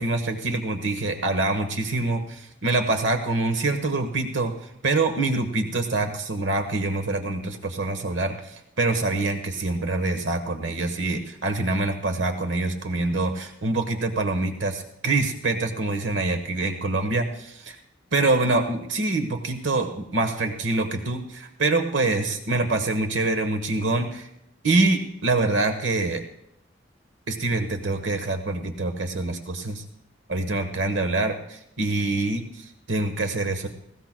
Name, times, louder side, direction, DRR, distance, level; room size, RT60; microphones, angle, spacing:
voice 1, 0.0-4.5 4.8-17.8 18.1-24.3 24.6-26.2 27.3-29.8 30.3-33.7, right 2 dB, 70° right, 5 dB, 1.2 m, -25 dB
19.5 x 16.5 x 2.2 m, 0.77 s
head